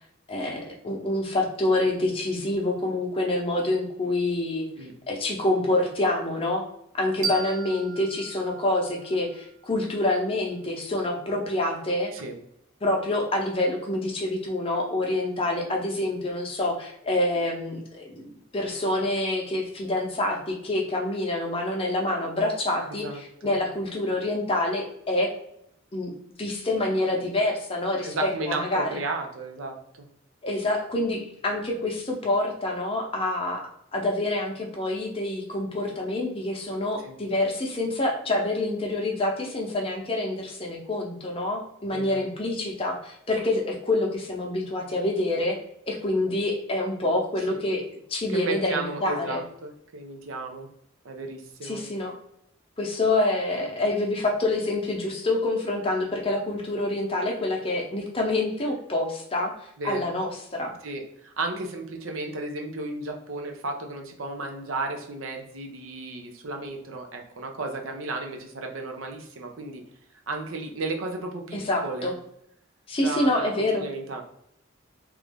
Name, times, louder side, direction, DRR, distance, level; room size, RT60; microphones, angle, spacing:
voice 1, 0.3-4.7 5.1-6.6 6.9-12.1 12.8-25.3 25.9-26.1 26.4-28.9 30.4-33.6 33.9-45.6 45.8-47.8 48.1-49.4 51.6-52.1 52.8-59.5 59.8-60.7 71.5-72.1 72.9-73.8, left 2 dB, 25° left, 0 dB, 0.6 m, -27 dB
sound 1, 7.2-10.0, right 5 dB, 35° right, 0.5 m, -36 dB
voice 2, 23.0-23.5 28.0-30.1 37.0-37.2 41.9-42.2 47.5-47.6 48.3-50.7 51.0-51.8 59.8-60.0 60.8-69.8 70.3-72.1 73.0-74.2, right 3 dB, 85° right, 3 dB, 0.6 m, -34 dB
3.0 x 2.5 x 3.4 m, 0.74 s
head